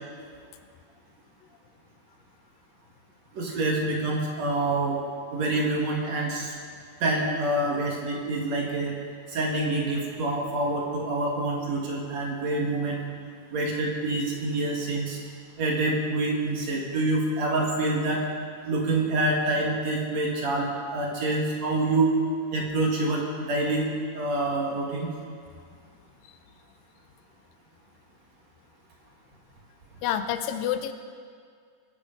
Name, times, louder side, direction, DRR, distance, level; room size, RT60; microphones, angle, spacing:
voice 1, 3.3-5.0 5.3-6.5 7.0-9.0 9.3-13.0 13.5-15.2 15.6-18.2 18.7-22.1 22.5-23.9 24.1-25.1, right 2 dB, 55° right, -1 dB, 2.6 m, -26 dB
voice 2, 30.0-30.9, left 10 dB, 90° left, 9 dB, 2.4 m, -28 dB
22.5 x 8.2 x 5.2 m, 2.1 s
omnidirectional pair, 4.1 m